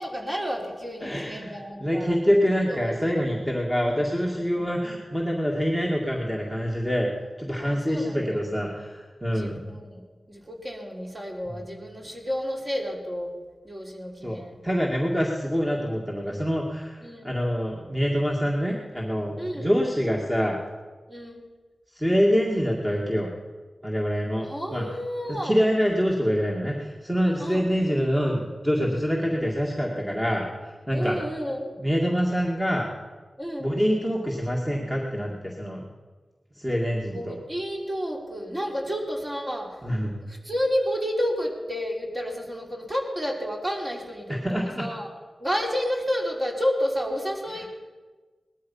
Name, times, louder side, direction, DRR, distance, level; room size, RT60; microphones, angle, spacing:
voice 1, 0.0-2.2 2.7-2.9 3.2-3.4 4.6-4.7 7.6-8.5 9.3-13.3 13.6-14.6 17.0-17.4 19.4-19.7 21.1-21.4 24.4-25.6 27.4-27.7 30.9-31.8 33.4-33.7 37.1-39.8 40.2-45.1 45.4-47.7, equal, 25° right, 0 dB, 3.5 m, -31 dB
voice 2, 1.0-7.1 7.4-9.6 14.2-14.4 14.6-20.6 22.0-23.3 23.8-24.8 25.3-30.5 30.9-31.2 31.8-32.9 33.6-35.8 36.6-37.4 39.8-40.1 44.3-44.9, equal, 10° right, -2 dB, 2.1 m, -25 dB
19.5 x 13.0 x 5.6 m, 1.3 s
wide cardioid pair, 65°, 0 cm